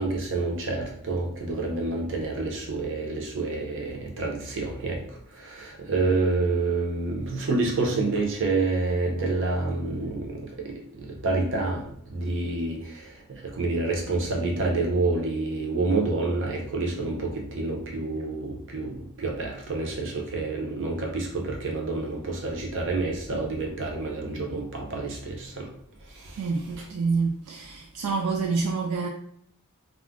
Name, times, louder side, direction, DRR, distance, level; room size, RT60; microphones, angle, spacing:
voice 1, 0.0-11.8 12.1-25.7 26.1-26.5 26.8-26.9, right 3 dB, 60° right, 0.7 m, -28 dB
voice 2, 26.4-29.1, right 4 dB, 85° right, 0.3 m, -27 dB
2.3 x 2.1 x 3.6 m
head